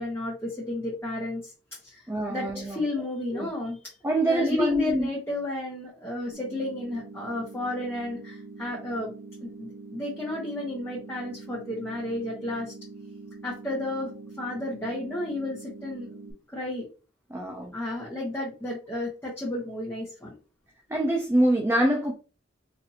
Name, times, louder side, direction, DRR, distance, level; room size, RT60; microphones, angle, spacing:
voice 1, 0.0-1.5 1.8-3.8 4.2-9.1 9.4-12.7 13.4-16.2 16.5-16.8 17.7-20.4, left 1 dB, 10° left, 1.0 m, -32 dB
voice 2, 2.1-2.8 3.3-3.5 4.0-5.1 17.3-17.7 20.9-22.1, right 1 dB, 15° right, 0.5 m, -25 dB
sound 1, 6.3-16.3, right 3 dB, 65° right, 0.7 m, -44 dB
4.1 x 2.6 x 2.8 m
head